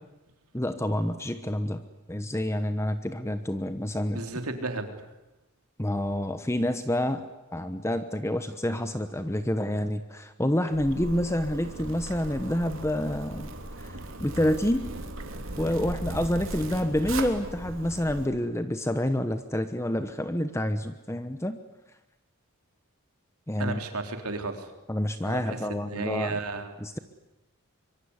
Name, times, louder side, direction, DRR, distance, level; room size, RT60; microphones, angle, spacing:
voice 1, 0.5-1.8 2.1-4.2 5.8-13.5 13.8-14.9 15.6-21.6 23.5-23.8 24.9-26.3 26.8-27.0, left 1 dB, 10° left, 10 dB, 1.0 m, -28 dB
voice 2, 4.1-5.1 23.6-24.7 25.2-25.6 25.9-26.7, right 2 dB, 85° right, 6 dB, 3.6 m, -33 dB
Zipper (clothing), 10.7-18.3, right 1 dB, 60° right, 3.2 m, -38 dB
24.5 x 24.0 x 9.7 m, 0.99 s
head